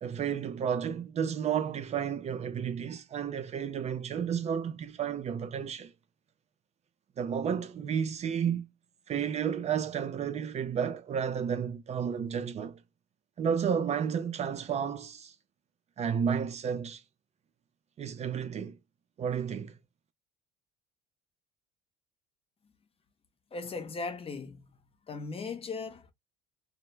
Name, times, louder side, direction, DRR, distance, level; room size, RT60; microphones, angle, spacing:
voice 1, 0.0-5.9 7.2-8.7 9.1-12.8 13.4-15.3 16.0-17.0 18.0-18.8 19.2-19.7, right 7 dB, 35° right, 0.4 m, -32 dB
voice 2, 23.5-24.8 25.1-26.1, left 4 dB, 30° left, 0.7 m, -38 dB
2.1 x 2.1 x 3.0 m
cardioid pair, 100°, 18 cm